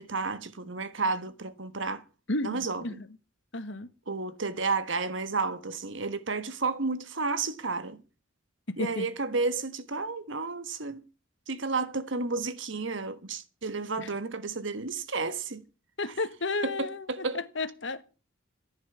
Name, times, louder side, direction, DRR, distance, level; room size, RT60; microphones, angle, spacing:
voice 1, 0.0-2.0 2.4-3.0 4.1-8.0 8.8-11.0 11.5-15.6 16.6-17.4, right 3 dB, 70° right, 1.4 m, -32 dB
voice 2, 2.3-3.1 3.5-3.9 8.7-9.1 14.0-14.1 16.0-18.0, left 2 dB, 65° left, 1.5 m, -33 dB
14.5 x 9.7 x 7.0 m
head